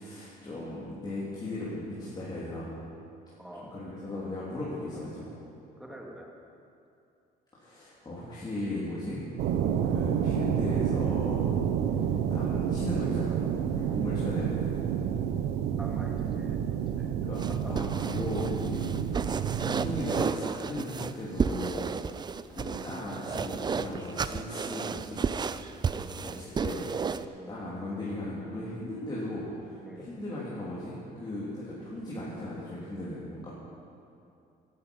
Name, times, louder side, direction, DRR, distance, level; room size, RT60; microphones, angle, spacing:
voice 1, 0.0-2.7 3.7-5.4 7.5-9.2 9.8-11.5 11.9-12.0 12.3-13.4 13.7-14.7 17.2-21.8 22.5-25.2 26.2-26.9 27.5-33.5, left 1 dB, 25° left, -8 dB, 3.4 m, -37 dB
voice 2, 3.4-3.7 5.8-6.3 15.8-17.9 25.9-26.3 27.4-27.5 29.8-30.0, right 1 dB, 5° right, -2 dB, 2.7 m, -46 dB
sound 1, 9.4-20.2, right 8 dB, 85° right, 0.9 m, -29 dB
sound 2, 17.3-27.2, right 5 dB, 25° right, 0.5 m, -32 dB
17.0 x 11.5 x 5.5 m, 2.6 s
cardioid pair, 110°, 17 cm